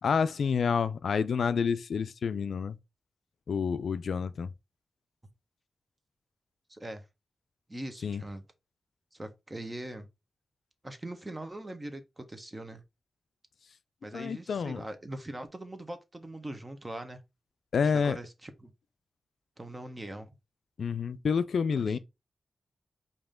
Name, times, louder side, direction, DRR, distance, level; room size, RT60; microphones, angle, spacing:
voice 1, 0.0-2.8 3.5-4.5 8.0-8.2 14.1-14.8 17.7-18.2 20.8-22.0, left 6 dB, 80° left, 0.3 m, -28 dB
voice 2, 6.7-7.0 7.7-8.4 9.1-10.1 10.8-12.8 14.0-17.2 17.8-18.7 19.6-20.3 21.8-22.0, right 1 dB, 25° right, 1.2 m, -41 dB
4.9 x 2.8 x 3.6 m
cardioid pair, 45°, 0 cm